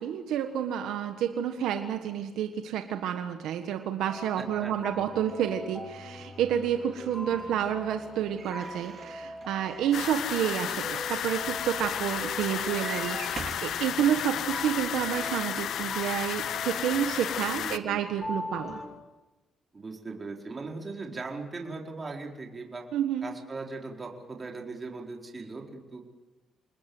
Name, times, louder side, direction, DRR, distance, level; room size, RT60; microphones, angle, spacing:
voice 1, 0.0-13.2 13.6-18.8 22.9-23.3, right 9 dB, 85° right, 6 dB, 1.5 m, -29 dB
sound 1, 4.0-18.9, equal, 20° left, 7.7 m, -42 dB
voice 2, 4.4-5.1 17.5-18.2 19.7-22.9 23.2-26.0, right 3 dB, 30° right, 1 dB, 4.5 m, -39 dB
sound 2, 8.4-13.7 14.4-14.5 14.8-14.9, right 5 dB, 50° right, 3.5 m, -45 dB
sound 3, 9.9-17.8, left 10 dB, 75° left, 0.9 m, -33 dB
27.5 x 20.5 x 8.0 m, 1.1 s
cardioid pair, 90°, 0 cm